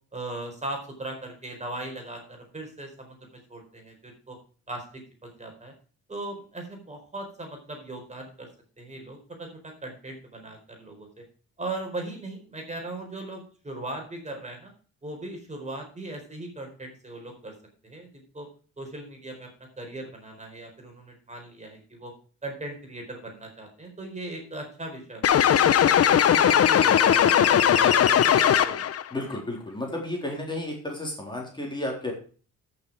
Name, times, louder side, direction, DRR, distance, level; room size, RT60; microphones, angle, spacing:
voice 1, 0.1-4.4 4.7-5.7 6.1-8.5 8.8-11.2 11.6-14.7 15.0-17.5 17.8-18.5 18.8-22.1 22.4-25.3 26.1-28.9, right 2 dB, 25° right, 3 dB, 4.5 m, -38 dB
sound 1, 25.2-29.0, left 9 dB, 50° left, 0.9 m, -19 dB
voice 2, 29.1-32.1, left 1 dB, 15° left, -1 dB, 3.8 m, -32 dB
13.5 x 6.8 x 4.8 m, 0.40 s
cardioid pair, 90°, 30 cm